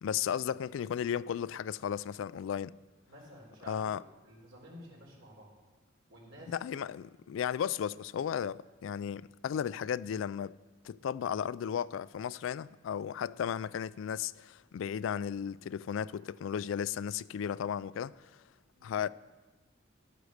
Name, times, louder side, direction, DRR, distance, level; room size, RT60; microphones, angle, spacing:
voice 1, 0.0-2.7 3.7-4.0 6.5-10.5 10.8-18.3 18.8-19.1, left 8 dB, 80° left, 0.3 m, -35 dB
voice 2, 3.1-4.0 4.2-5.5 6.1-6.7 18.8-18.9, equal, 85° right, 3.9 m, -51 dB
12.0 x 8.1 x 6.5 m
head